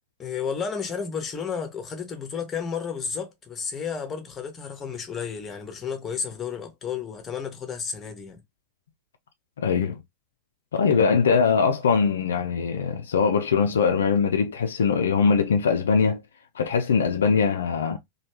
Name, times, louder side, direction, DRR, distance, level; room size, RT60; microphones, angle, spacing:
voice 1, 0.2-8.4, left 6 dB, 20° left, 0.9 m, -32 dB
voice 2, 9.6-10.0 10.7-16.2 16.5-18.0, left 5 dB, 65° left, 0.4 m, -22 dB
3.1 x 2.3 x 2.9 m
figure-of-eight pair, 90°, 0 cm